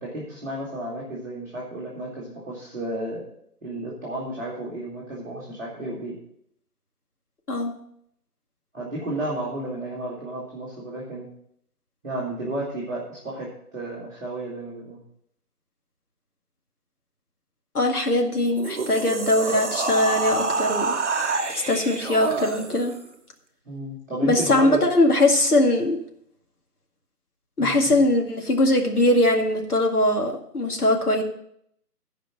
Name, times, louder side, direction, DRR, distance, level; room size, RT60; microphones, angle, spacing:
voice 1, 0.0-3.2 3.6-6.2 8.7-11.3 12.0-15.0 23.6-24.8 27.6-28.0, right 1 dB, 10° right, -11 dB, 1.6 m, -32 dB
voice 2, 17.7-21.0 21.5-22.9 24.2-26.0 27.6-31.2, left 1 dB, 70° left, 2 dB, 2.2 m, -21 dB
sound 1, 18.5-23.1, right 4 dB, 50° right, 0.8 m, -28 dB
14.0 x 5.1 x 6.0 m, 0.71 s
figure-of-eight pair, 175°, 47 cm